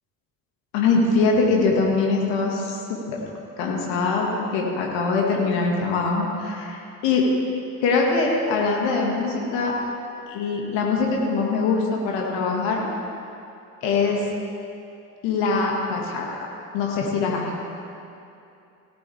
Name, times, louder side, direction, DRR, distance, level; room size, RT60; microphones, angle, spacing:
voice 1, 0.7-3.2 3.6-7.3 7.8-9.8 10.3-12.8 13.8-14.3 15.2-16.3 16.7-17.5, left 4 dB, 65° left, -1 dB, 2.0 m, -23 dB
18.0 x 8.3 x 3.5 m, 2.7 s
hypercardioid pair, 55°, 46 cm